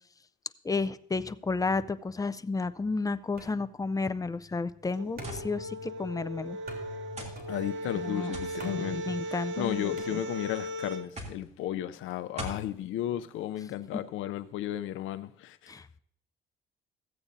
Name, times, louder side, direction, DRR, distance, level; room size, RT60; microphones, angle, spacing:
voice 1, 0.6-6.6 7.9-8.3 8.6-10.2 13.9-14.0 15.7-16.0, left 3 dB, 15° left, 0.5 m, -32 dB
sound 1, 3.4-10.7, left 1 dB, 50° right, 3.2 m, -48 dB
sound 2, 4.9-11.1, equal, 70° right, 1.0 m, -37 dB
sound 3, 5.2-5.5 6.4-6.5 7.2-7.4 8.3-8.6 9.6-10.0 11.2-11.4 12.4-12.7, equal, 35° right, 2.7 m, -39 dB
voice 2, 7.5-9.0 9.6-16.0, left 13 dB, 85° left, 0.5 m, -34 dB
15.0 x 8.5 x 2.6 m
cardioid pair, 90°, 20 cm